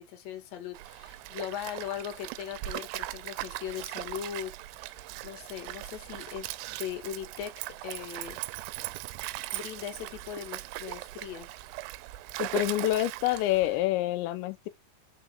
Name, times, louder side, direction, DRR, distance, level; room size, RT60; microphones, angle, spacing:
voice 1, 0.0-8.4 9.5-11.5, left 10 dB, 55° left, 2.1 m, -39 dB
Stream, 0.7-13.8, right 18 dB, 85° right, 2.6 m, -39 dB
voice 2, 12.4-14.7, left 15 dB, 85° left, 3.0 m, -27 dB
6.2 x 3.8 x 5.7 m
omnidirectional pair, 5.1 m